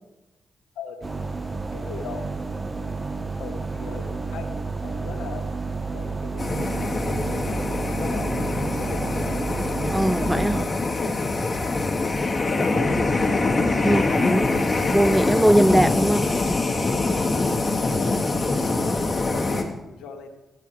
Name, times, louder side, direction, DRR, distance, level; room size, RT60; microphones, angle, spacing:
voice 1, 0.7-2.3 2.7-5.5 5.9-9.4 10.2-14.6 16.9-17.2 17.6-20.3, left 5 dB, 85° left, 1.4 m, -40 dB
sound 1, 1.0-10.7, right 4 dB, 30° right, 1.2 m, -30 dB
sound 2, 6.4-19.6, left 3 dB, 35° left, 2.4 m, -24 dB
voice 2, 9.9-10.6 13.8-14.5 14.9-16.6, right 1 dB, 5° right, 0.3 m, -21 dB
21.5 x 9.7 x 3.4 m
supercardioid pair, 45°, 0 cm